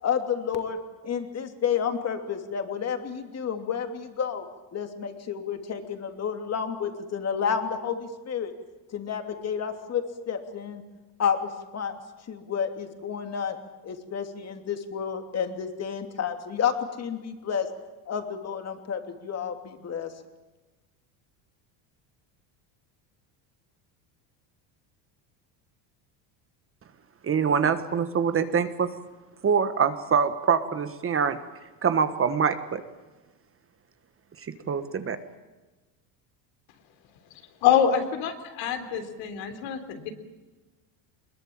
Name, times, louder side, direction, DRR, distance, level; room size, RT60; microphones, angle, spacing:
voice 1, 0.0-4.4 4.7-8.5 8.9-10.8 11.2-11.9 12.3-13.6 13.8-17.7 18.1-20.1, left 7 dB, 30° left, 6 dB, 2.9 m, -30 dB
voice 2, 27.2-28.9 29.4-31.4 31.8-32.8 34.5-35.2, right 6 dB, 25° right, 10 dB, 1.5 m, -24 dB
voice 3, 37.6-40.1, left 8 dB, 70° left, 7 dB, 3.6 m, -25 dB
22.0 x 21.5 x 8.8 m, 1.2 s
cardioid pair, 130°, 48 cm